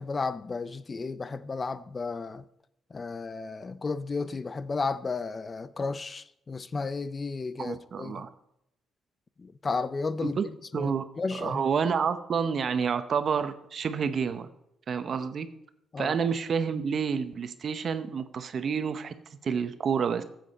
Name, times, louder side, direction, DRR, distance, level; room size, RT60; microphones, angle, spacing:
voice 1, 0.0-2.4 2.9-8.2 9.4-11.6 15.9-16.2, left 4 dB, 30° left, 0.4 m, -33 dB
voice 2, 7.6-8.3 10.2-10.4 10.7-11.0 11.3-14.5 14.9-15.5 16.0-19.1 19.4-20.2, right 6 dB, 50° right, 0.8 m, -29 dB
14.5 x 7.7 x 4.2 m
cardioid pair, 90°, 0 cm